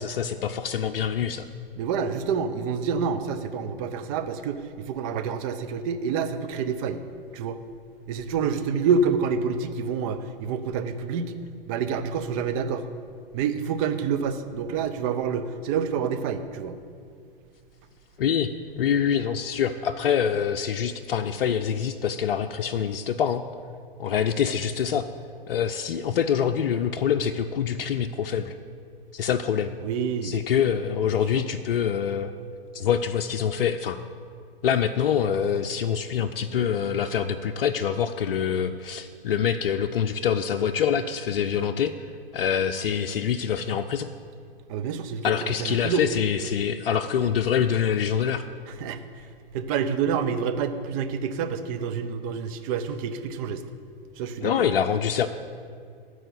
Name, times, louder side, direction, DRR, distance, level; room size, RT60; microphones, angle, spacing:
voice 1, 0.0-1.5 18.2-23.4 24.0-25.0 25.5-28.5 29.1-29.7 30.2-32.3 32.7-34.0 34.6-41.9 42.3-44.1 45.2-48.4 54.4-55.3, left 8 dB, 65° left, 5 dB, 0.6 m, -25 dB
voice 2, 1.8-7.0 7.3-7.6 8.1-11.4 11.7-12.8 13.3-16.8 29.8-30.4 31.1-31.4 44.7-46.1 48.7-49.3 49.5-53.6 54.2-54.6, right 6 dB, 35° right, 9 dB, 0.8 m, -28 dB
13.5 x 4.9 x 7.8 m, 2.2 s
hypercardioid pair, 120°, 29 cm